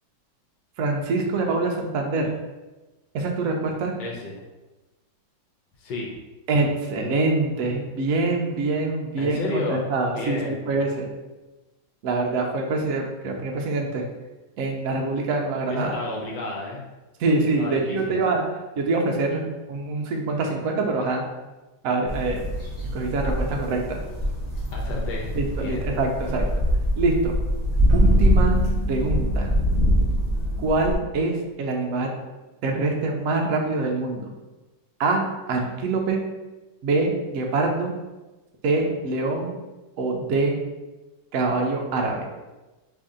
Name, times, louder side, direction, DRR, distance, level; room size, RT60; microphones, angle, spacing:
voice 1, 0.8-2.3 3.1-3.9 6.5-11.1 12.0-14.0 14.6-15.9 17.2-18.4 18.8-19.4 19.7-21.2 21.8-22.4 22.9-24.0 25.3-26.4 27.0-27.3 27.9-28.6 28.9-29.5 30.6-32.1 32.6-34.3 35.0-35.2 35.5-36.2 36.8-37.9 38.6-39.6 40.0-40.5 41.3-42.2, right 3 dB, 75° right, 2 dB, 0.7 m, -24 dB
voice 2, 4.0-4.4 5.8-6.1 9.2-9.9 10.1-10.6 15.7-16.8 17.6-18.2 24.7-25.8, left 2 dB, 70° left, -2 dB, 1.2 m, -31 dB
sound 1, 22.1-30.9, equal, 20° left, 1.1 m, -23 dB
sound 2, 27.9-31.1, equal, 45° right, 1.1 m, -37 dB
3.1 x 2.6 x 3.6 m, 1.1 s
omnidirectional pair, 2.1 m